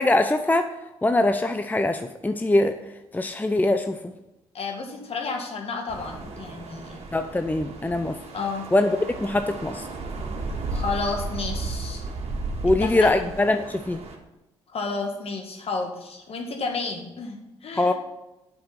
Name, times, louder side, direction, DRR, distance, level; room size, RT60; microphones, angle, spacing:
voice 1, 0.0-2.8 3.1-4.1 7.1-8.2 8.7-9.9 12.6-14.0 17.7-17.9, left 2 dB, 15° left, 8 dB, 0.6 m, -23 dB
voice 2, 4.5-7.0 8.3-8.7 10.7-12.1 12.8-13.1 14.7-17.9, left 4 dB, 55° left, 3 dB, 2.0 m, -31 dB
sound 1, 5.9-14.2, right 3 dB, 55° right, 1.9 m, -34 dB
8.3 x 6.2 x 5.8 m, 0.96 s
supercardioid pair, 55°, 12 cm